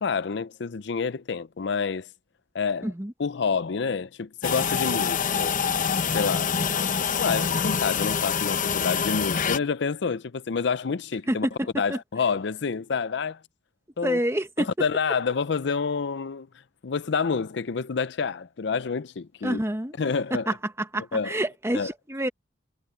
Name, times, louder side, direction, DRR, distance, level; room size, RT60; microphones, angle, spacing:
voice 1, 0.0-2.1 2.5-2.9 3.2-5.5 6.1-6.6 7.2-13.4 14.0-14.2 14.6-16.5 16.8-19.6 20.0-20.5 21.1-21.4 21.7-21.9, left 5 dB, 70° left, 0.5 m, -28 dB
sound 1, 4.4-9.6, left 6 dB, 45° left, 0.9 m, -25 dB
voice 2, 14.0-14.7 19.4-19.9 20.5-20.6 20.9-22.3, right 1 dB, 15° right, 1.2 m, -27 dB
head